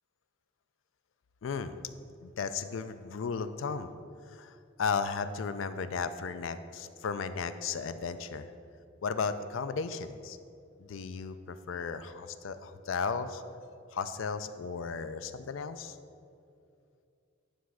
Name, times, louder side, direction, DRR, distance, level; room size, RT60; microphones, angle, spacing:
voice 1, 1.4-1.8 2.2-3.9 4.3-8.5 9.0-10.4 10.8-13.4 13.9-16.0, left 5 dB, 70° left, 11 dB, 0.4 m, -35 dB
9.5 x 3.4 x 6.2 m, 2.4 s
head